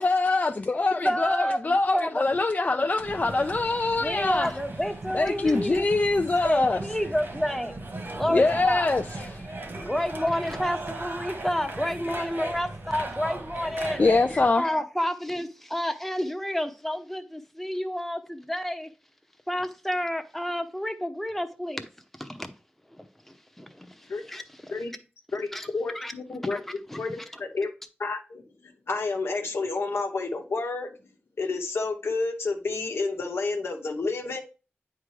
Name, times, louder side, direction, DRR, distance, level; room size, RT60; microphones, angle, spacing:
voice 1, 0.0-4.5 5.1-6.8 8.3-9.4 14.0-14.7, left 3 dB, 40° left, 0.4 m, -24 dB
voice 2, 1.0-1.6 1.9-2.9 4.0-5.9 6.4-7.8 8.2-8.9 9.7-14.0 14.3-18.9 19.5-21.9 22.2-22.5 23.0-23.1 23.6-24.4 25.5-25.7 25.9-26.1 26.5-26.6 26.9-27.0 27.3-27.4, equal, 5° left, 0.7 m, -30 dB
sound 1, 3.0-14.5, right 2 dB, 60° right, 1.6 m, -37 dB
voice 3, 25.7-26.6 27.0-27.7 28.0-30.9 31.4-34.4, left 3 dB, 90° left, 1.0 m, -30 dB
9.1 x 3.7 x 3.2 m
wide cardioid pair, 60°, 4 cm